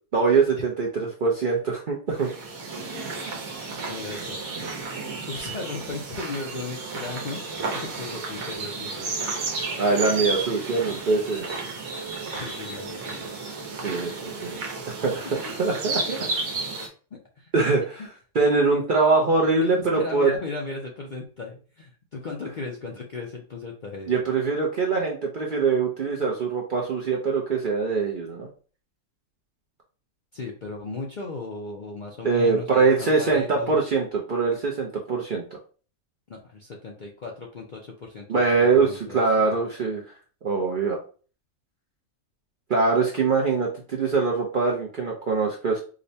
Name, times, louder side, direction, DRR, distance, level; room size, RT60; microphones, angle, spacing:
voice 1, 0.1-2.3 9.8-11.5 13.8-14.6 14.9-16.2 17.5-18.0 18.3-20.3 24.1-28.5 32.2-35.4 38.3-38.9 39.1-40.0 40.4-41.0 42.7-45.8, right 4 dB, 55° right, -1 dB, 0.6 m, -23 dB
sound 1, 2.2-16.9, right 3 dB, 80° right, 1.3 m, -33 dB
voice 2, 3.9-4.4 5.3-7.4 7.7-9.1 12.4-13.3 17.1-17.5 18.0-18.1 19.9-24.3 30.3-33.8 36.3-39.6 40.6-40.7, left 3 dB, 55° left, -1 dB, 0.5 m, -36 dB
5.0 x 2.1 x 2.7 m, 0.39 s
omnidirectional pair, 1.5 m